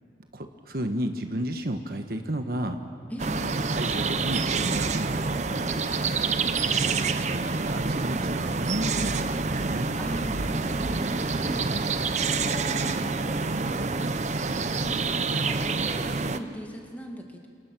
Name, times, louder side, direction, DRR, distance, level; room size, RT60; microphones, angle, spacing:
voice 1, 0.3-2.8 3.7-5.3 6.7-9.9, right 1 dB, 55° right, 6 dB, 1.3 m, -32 dB
voice 2, 3.1-3.6 10.0-14.5 14.7-17.5, equal, 10° left, 1 dB, 1.8 m, -39 dB
sound 1, 3.2-16.4, right 4 dB, 40° right, 0.7 m, -27 dB
29.5 x 28.0 x 6.2 m, 2.2 s
head